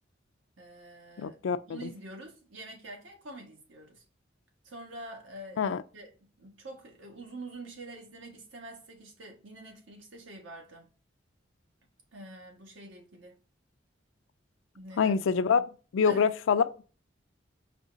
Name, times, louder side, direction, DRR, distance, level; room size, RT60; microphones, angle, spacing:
voice 1, 0.6-1.4 1.7-4.0 4.6-5.6 5.9-6.1 6.4-10.9 12.1-13.4 14.7-15.1 15.5-15.7 16.1-16.3, right 2 dB, 85° right, 1.4 m, -46 dB
voice 2, 1.2-1.8 5.6-5.8 15.0-15.6 15.9-16.8, left 6 dB, 85° left, 0.4 m, -25 dB
5.1 x 2.8 x 2.6 m
head